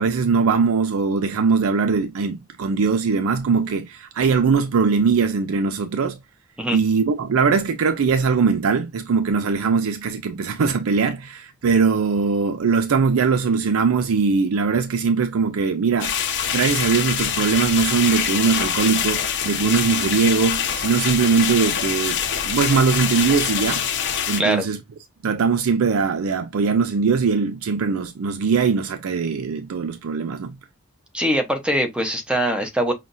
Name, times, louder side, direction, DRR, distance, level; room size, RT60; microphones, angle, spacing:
voice 1, 0.0-6.2 6.7-16.1 16.5-23.9 24.3-24.8 25.2-30.5, right 5 dB, 75° right, 0.4 m, -21 dB
sound 1, 16.0-24.4, left 8 dB, 55° left, 0.7 m, -24 dB
voice 2, 31.1-32.9, right 1 dB, 5° right, 0.8 m, -22 dB
5.7 x 2.4 x 2.6 m
head